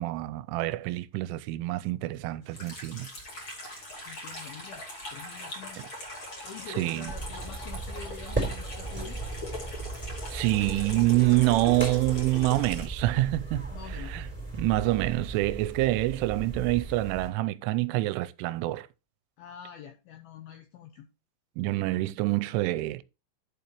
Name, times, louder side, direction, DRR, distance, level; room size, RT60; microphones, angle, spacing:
voice 1, 0.0-3.1 5.8-5.9 6.8-7.1 10.3-14.3 14.6-18.9 21.6-23.0, right 18 dB, 85° right, 3.0 m, -27 dB
Water tap faucet / Sink (filling or washing), 2.5-12.9, left 1 dB, 35° left, 2.4 m, -41 dB
voice 2, 4.0-4.8 5.1-5.8 6.4-9.2 13.7-14.2 19.4-21.1, left 8 dB, 80° left, 2.2 m, -46 dB
sound 1, 7.1-17.3, right 3 dB, 5° right, 2.7 m, -37 dB
11.5 x 6.8 x 3.0 m
omnidirectional pair, 5.5 m